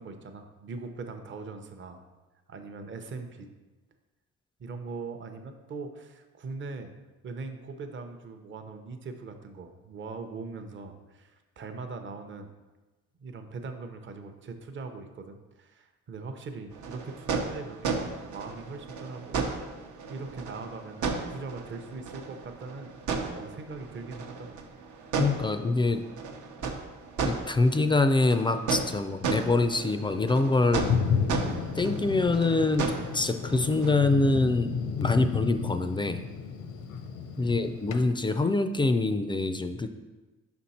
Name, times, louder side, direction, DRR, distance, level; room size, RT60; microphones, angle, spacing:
voice 1, 0.0-2.1 2.5-3.5 4.6-6.9 7.2-12.5 13.2-19.4 20.1-22.9 23.3-24.7 37.4-37.6, right 4 dB, 40° right, 6 dB, 0.7 m, -41 dB
sound 1, 16.7-33.9, right 4 dB, 80° right, 0.8 m, -34 dB
voice 2, 25.2-26.0 27.2-30.9 31.8-34.7 35.0-36.2 37.4-39.9, left 3 dB, 15° left, 9 dB, 0.3 m, -25 dB
Thunder, 30.8-38.0, left 6 dB, 80° left, 0.6 m, -32 dB
5.7 x 4.4 x 4.1 m, 1.2 s
cardioid pair, 90°, 30 cm